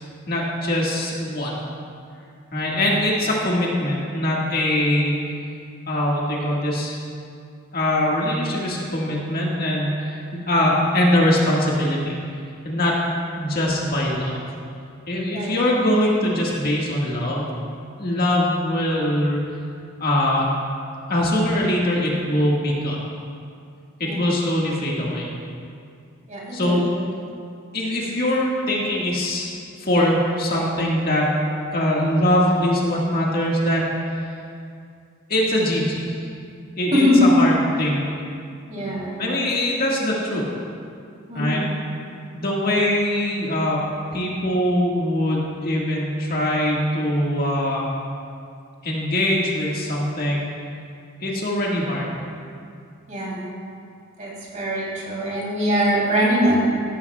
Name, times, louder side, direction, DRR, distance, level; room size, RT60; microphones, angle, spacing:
voice 1, 0.3-1.6 2.5-5.2 5.9-7.0 7.7-12.2 12.6-13.0 13.4-14.5 15.1-17.5 18.0-19.4 20.0-20.5 21.1-23.0 24.0-25.3 26.5-26.8 27.7-29.5 29.8-31.3 31.7-34.2 35.3-36.2 36.8-38.0 39.2-40.5 41.3-41.6 42.3-43.8 44.1-47.9 48.8-50.4 51.2-52.1, left 1 dB, 45° left, -4 dB, 1.8 m, -22 dB
voice 2, 24.0-24.4 26.3-26.9 36.9-37.3 38.7-39.4 41.3-41.7 53.1-53.5 54.2-56.7, equal, 35° right, -4 dB, 3.2 m, -22 dB
16.0 x 14.0 x 2.4 m, 2.4 s
head